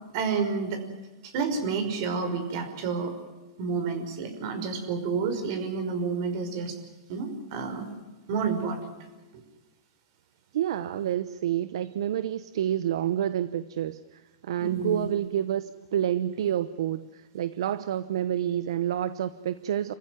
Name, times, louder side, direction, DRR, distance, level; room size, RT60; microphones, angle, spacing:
voice 1, 0.1-0.8 1.2-3.1 3.6-6.8 7.1-7.9 8.3-8.8 14.6-15.1, right 5 dB, 50° right, 7 dB, 5.5 m, -29 dB
voice 2, 10.5-19.9, right 10 dB, 75° right, 14 dB, 0.9 m, -29 dB
28.0 x 15.0 x 9.6 m, 1.2 s
hypercardioid pair, 140°, 3 cm